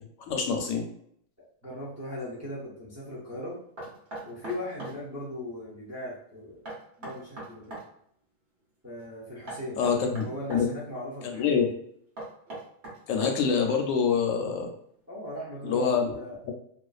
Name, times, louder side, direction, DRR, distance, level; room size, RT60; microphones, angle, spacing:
voice 1, 0.3-0.8 9.8-10.7 11.3-11.7 13.1-14.7 15.6-16.1 16.5-16.6, left 6 dB, 75° left, 2 dB, 0.9 m, -25 dB
voice 2, 1.6-3.6 4.2-6.6 7.0-7.8 8.8-9.8 10.2-11.7 15.1-16.4, left 1 dB, 25° right, -6 dB, 0.4 m, -38 dB
Knock, 3.8-5.0 6.7-7.9 9.5-10.7 12.2-13.6, right 2 dB, 55° right, 1.0 m, -40 dB
2.4 x 2.4 x 2.3 m, 0.67 s
omnidirectional pair, 1.4 m